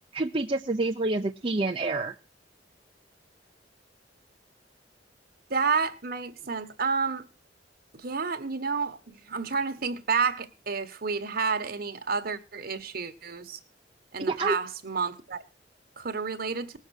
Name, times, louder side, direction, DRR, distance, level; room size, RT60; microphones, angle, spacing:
voice 1, 0.1-2.1 14.2-14.6, right 2 dB, 30° right, 0.6 m, -28 dB
voice 2, 5.5-7.2 7.9-13.6 14.1-15.4 16.0-16.7, right 5 dB, 55° right, 1.3 m, -30 dB
19.0 x 6.6 x 6.4 m
head